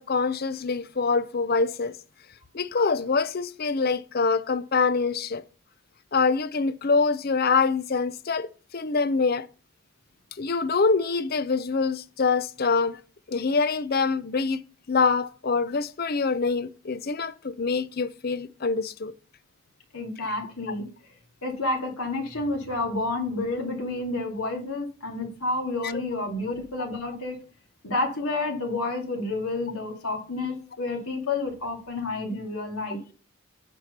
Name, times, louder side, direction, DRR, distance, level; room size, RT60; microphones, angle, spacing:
voice 1, 0.0-1.9 2.5-5.4 6.1-9.5 10.4-13.0 13.3-14.6 14.9-19.1 20.4-20.7, left 4 dB, 45° left, 0.6 m, -25 dB
voice 2, 19.9-20.9 21.4-27.4 27.8-33.0, left 2 dB, 85° left, 2.5 m, -30 dB
9.0 x 4.5 x 6.6 m
head